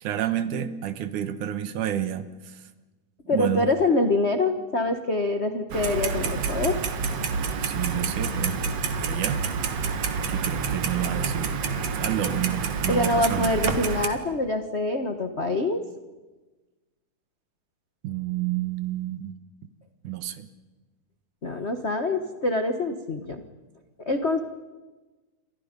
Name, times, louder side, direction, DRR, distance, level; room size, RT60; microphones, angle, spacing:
voice 1, 0.0-2.3 3.3-3.7 7.6-8.6 9.0-9.5 10.3-11.6 11.9-13.7 18.0-19.4 20.0-20.5, right 11 dB, 75° right, 11 dB, 2.7 m, -29 dB
voice 2, 3.3-6.8 12.9-15.8 21.4-23.4 24.0-24.4, left 2 dB, 75° left, 6 dB, 0.6 m, -25 dB
Clock, 5.7-14.1, right 5 dB, 60° right, 2.6 m, -28 dB
29.5 x 26.0 x 5.3 m, 1.2 s
omnidirectional pair, 3.5 m